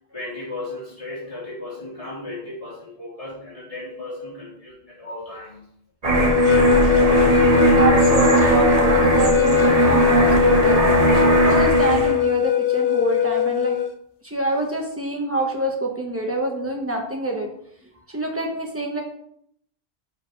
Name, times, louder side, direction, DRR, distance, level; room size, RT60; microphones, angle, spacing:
voice 1, 0.1-5.7, left 2 dB, 35° left, -7 dB, 3.3 m, -35 dB
sound 1, 6.0-12.2, right 3 dB, 35° right, 1.4 m, -18 dB
sound 2, 6.1-13.9, left 11 dB, 60° left, 0.8 m, -20 dB
voice 2, 7.8-10.8 11.4-13.8 14.2-17.5 18.1-19.0, right 2 dB, 15° right, 0 dB, 1.5 m, -26 dB
10.5 x 5.6 x 3.3 m, 0.70 s
omnidirectional pair, 1.1 m